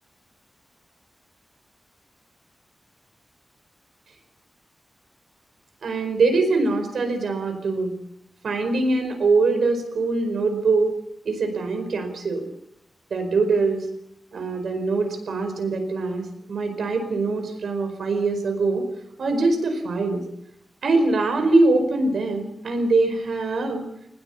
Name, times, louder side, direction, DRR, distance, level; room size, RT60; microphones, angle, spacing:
voice 1, 5.8-7.9 8.4-10.9 11.2-12.5 13.1-13.8 14.3-18.9 19.2-20.2 20.8-23.8, right 3 dB, 85° right, 6 dB, 4.8 m, -23 dB
20.0 x 18.0 x 7.2 m, 0.77 s
wide cardioid pair, 160°, 0 cm